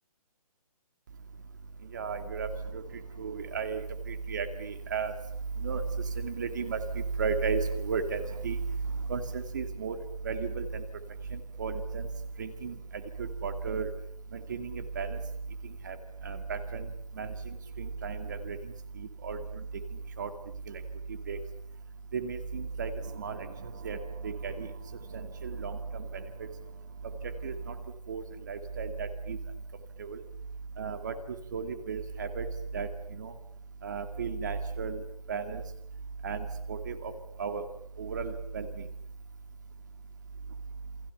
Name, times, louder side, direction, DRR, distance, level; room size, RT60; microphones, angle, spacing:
voice 1, 1.9-2.5 3.2-3.8 4.3-5.1 5.6-5.8 6.2-6.8 7.2-8.6 9.1-9.9 10.2-10.6 11.6-12.0 12.4-12.7 13.4-13.9 14.5-15.2 15.9-16.0 16.3-16.8 17.2-17.3 17.8-18.6 19.2-19.4 20.2-20.3 21.3-21.4 22.1-22.9 23.2-23.4 23.8-24.0 24.2-24.7 25.4-25.8 27.4-27.5 28.1-28.2 28.5-29.4 30.8-31.1 31.5-32.4 32.7-32.9 33.2-33.3 33.8-35.0 35.3-35.6 36.2-36.4 36.7-36.9 37.4-37.6 38.0-38.7, right 5 dB, 30° right, 9 dB, 2.3 m, -33 dB
29.5 x 24.0 x 7.0 m, 0.68 s
hypercardioid pair, 180°, 20 cm